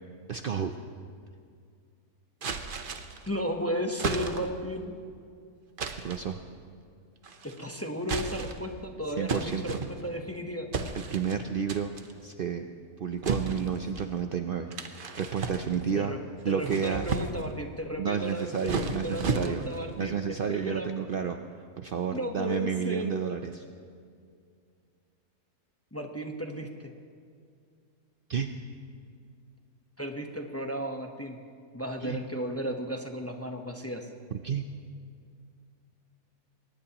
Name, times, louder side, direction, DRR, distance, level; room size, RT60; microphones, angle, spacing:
voice 1, 0.3-0.7 6.0-6.4 9.2-9.8 10.9-11.9 12.2-12.6 13.0-14.7 15.2-16.1 16.4-17.1 18.0-19.6 20.0-21.4 21.8-23.6 28.3-28.5 32.0-32.2 34.4-34.6, right 7 dB, 85° right, 6 dB, 0.4 m, -31 dB
sound 1, 2.4-3.3 4.0-4.6 5.8-6.3 7.2-7.6 8.0-8.7 9.3-10.3 10.7-11.4 11.7-12.1 13.2-14.1 14.7-16.0 16.5-17.5 18.3-19.9, right 4 dB, 45° right, 0.8 m, -34 dB
voice 2, 3.2-4.9 7.4-9.8 10.0-10.7 15.9-16.2 16.5-20.9 22.1-23.1 25.9-26.9 30.0-31.4 31.7-34.1, equal, 10° left, 3 dB, 0.7 m, -34 dB
22.0 x 19.0 x 2.9 m, 2.2 s
omnidirectional pair, 1.7 m